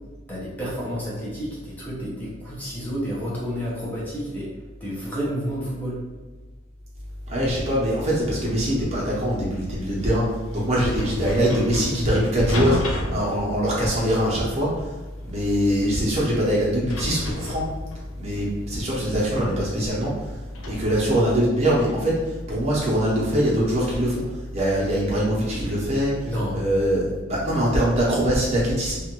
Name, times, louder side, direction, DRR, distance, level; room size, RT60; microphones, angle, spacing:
voice 1, 0.3-4.5 4.8-6.0 26.2-26.6, equal, 10° left, -7 dB, 0.7 m, -30 dB
voice 2, 7.3-10.2 10.5-14.9 15.2-17.6 18.2-20.3 20.7-26.1 26.5-29.0, equal, 35° right, -6 dB, 0.8 m, -23 dB
sound 1, 9.8-21.5, left 1 dB, 80° left, 0.5 m, -34 dB
2.5 x 2.5 x 3.0 m, 1.2 s
head